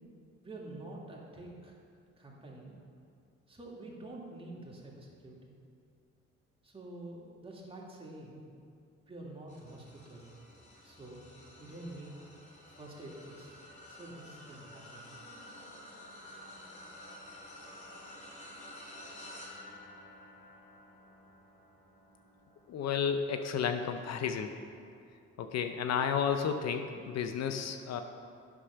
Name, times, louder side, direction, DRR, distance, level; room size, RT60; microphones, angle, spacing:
voice 1, 0.4-1.8 2.2-2.7 3.5-5.6 6.6-8.4 9.1-10.3 10.8-11.2 11.6-12.2 12.6-15.1, right 2 dB, 20° right, -3 dB, 2.2 m, -47 dB
sound 1, 9.5-25.0 25.5-25.8 27.0-27.1, left 1 dB, 25° left, 2.6 m, -52 dB
voice 2, 22.7-24.5 25.4-28.0, left 7 dB, 60° left, 7 dB, 0.7 m, -32 dB
8.8 x 6.2 x 5.7 m, 2.3 s
supercardioid pair, 75°, 29 cm